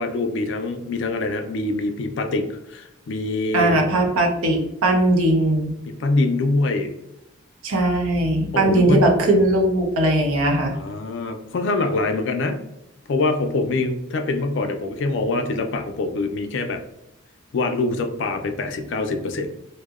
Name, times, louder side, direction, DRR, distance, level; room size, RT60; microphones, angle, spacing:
voice 1, 0.0-3.8 5.9-6.9 8.5-9.1 10.7-12.6 13.1-16.8 17.5-19.5, left 2 dB, 60° left, 6 dB, 0.3 m, -24 dB
voice 2, 3.5-5.7 7.6-10.7, right 1 dB, 90° right, 2 dB, 0.6 m, -19 dB
2.7 x 2.0 x 2.3 m, 0.86 s
head